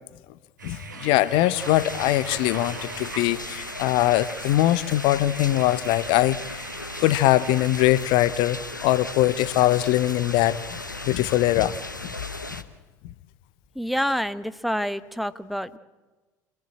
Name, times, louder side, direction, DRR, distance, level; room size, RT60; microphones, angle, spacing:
voice 1, 0.6-6.7 7.0-11.8, left 15 dB, 55° left, 17 dB, 0.8 m, -22 dB
sound 1, 0.6-8.0, right 4 dB, 80° right, 1.9 m, -41 dB
sound 2, 1.6-12.6, left 2 dB, 90° left, 1.1 m, -36 dB
voice 2, 13.7-15.8, equal, ahead, 12 dB, 1.1 m, -27 dB
27.5 x 18.0 x 8.7 m, 1.2 s
figure-of-eight pair, 60°, 10 cm